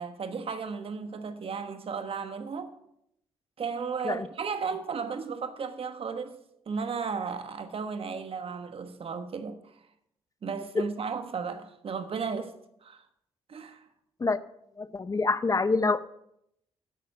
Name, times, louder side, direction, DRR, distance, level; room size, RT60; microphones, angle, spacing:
voice 1, 0.0-2.7 3.6-9.6 10.4-12.5 12.8-13.0 13.5-13.8, right 5 dB, 55° right, 1.2 m, -34 dB
voice 2, 14.8-16.0, left 3 dB, 30° left, 0.6 m, -26 dB
9.8 x 8.5 x 4.9 m
supercardioid pair, 50°, 12 cm